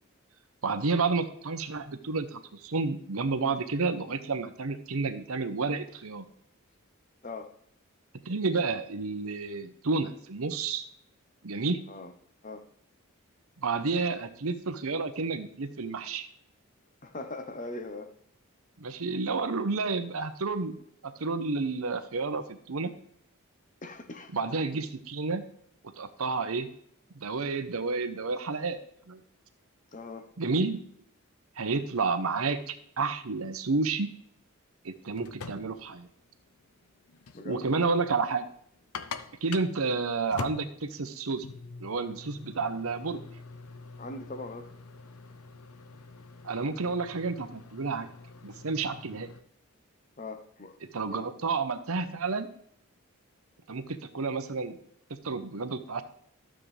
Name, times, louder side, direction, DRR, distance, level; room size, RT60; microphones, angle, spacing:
voice 1, 0.6-6.2 8.3-10.9 11.4-11.8 13.6-16.3 18.8-20.8 21.0-22.9 24.3-25.4 26.0-26.7 27.2-28.8 29.1-29.2 30.4-30.8 31.6-34.1 34.8-36.1 37.4-38.5 39.4-41.5 41.8-43.2 46.4-48.1 48.4-49.3 50.9-52.5 53.7-54.8 55.2-56.0, right 4 dB, 80° right, 0.8 m, -30 dB
voice 2, 17.0-18.1 23.8-24.3 29.9-30.3 37.3-37.7 44.0-44.7 50.2-50.7 51.1-51.2, left 2 dB, 35° left, 0.9 m, -40 dB
sound 1, 34.9-49.4, left 4 dB, 85° left, 0.7 m, -45 dB
12.5 x 7.5 x 3.3 m
head